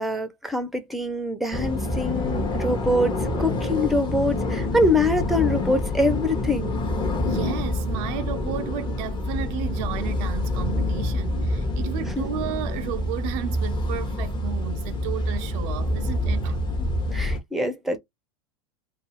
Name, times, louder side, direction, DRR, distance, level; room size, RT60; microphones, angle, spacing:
voice 1, 0.0-6.8 12.1-12.2 16.8-18.0, left 1 dB, ahead, 0.6 m, -24 dB
sound 1, 1.5-17.4, left 1 dB, 25° left, 0.8 m, -27 dB
voice 2, 7.2-16.6, right 10 dB, 55° right, 0.4 m, -33 dB
2.4 x 2.2 x 3.1 m
hypercardioid pair, 95°, 18 cm